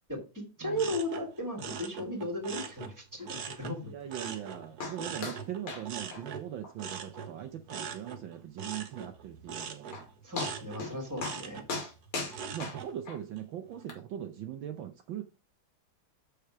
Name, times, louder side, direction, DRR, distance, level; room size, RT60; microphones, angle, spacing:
voice 1, 0.6-3.9 10.2-11.6, equal, 10° right, 2.6 m, -36 dB
sound 1, 0.7-3.8 4.1-12.9 13.4-13.8, right 6 dB, 55° right, 1.4 m, -42 dB
voice 2, 3.9-9.9 12.5-15.2, right 11 dB, 70° right, 1.5 m, -40 dB
sound 2, 4.8-5.0 5.2-5.4 5.7-5.8 6.1-6.2 6.6-6.7 7.1-7.2 7.7-7.8 9.5-9.6 9.9-10.1 10.4-10.9 11.2-11.4 11.7-13.2 13.9-14.0, left 3 dB, 80° left, 3.4 m, -37 dB
6.9 x 6.8 x 4.8 m
omnidirectional pair, 2.3 m